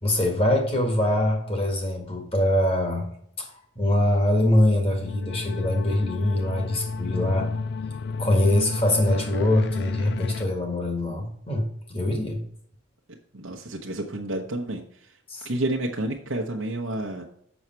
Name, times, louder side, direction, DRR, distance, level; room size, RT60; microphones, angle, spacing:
voice 1, 0.0-3.1 3.4-7.5 8.2-12.4 15.3-15.5, left 1 dB, 30° left, 2 dB, 1.8 m, -23 dB
sound 1, 4.8-10.5, left 4 dB, 55° left, 0.3 m, -32 dB
voice 2, 13.3-15.1 15.4-17.3, right 1 dB, 80° right, -1 dB, 1.0 m, -30 dB
7.1 x 6.4 x 4.5 m, 0.68 s
head